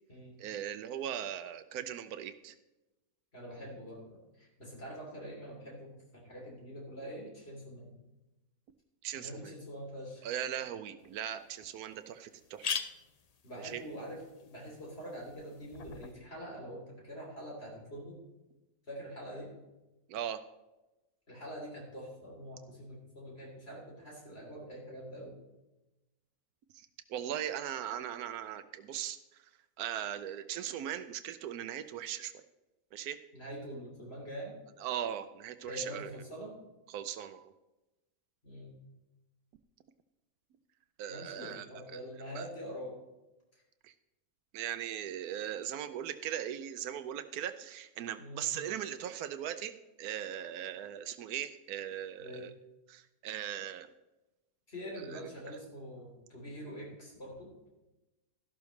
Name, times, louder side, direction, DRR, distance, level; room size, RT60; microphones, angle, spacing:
voice 1, 0.4-2.5 9.0-9.5 10.2-12.7 13.6-13.8 20.1-20.4 27.1-29.2 29.8-32.4 32.9-33.2 34.8-36.1 36.9-37.5 41.0-41.7 41.9-42.0 42.3-42.4 43.8-43.9 44.5-49.7 50.0-52.5 52.9-53.9 55.1-55.2, right 10 dB, 90° right, 10 dB, 1.1 m, -39 dB
voice 2, 3.3-7.9 9.2-10.3 13.4-18.2 18.9-19.5 21.3-25.4 33.3-34.5 35.7-36.5 38.4-38.8 41.1-43.0 48.2-48.5 52.2-52.5 54.7-57.7, equal, 45° left, -2 dB, 3.6 m, -45 dB
sound 1, 11.0-11.1 11.6-11.7 11.9-12.0 12.3-16.1, left 6 dB, 80° left, 0.3 m, -42 dB
13.0 x 12.0 x 3.2 m, 1.0 s
omnidirectional pair, 1.6 m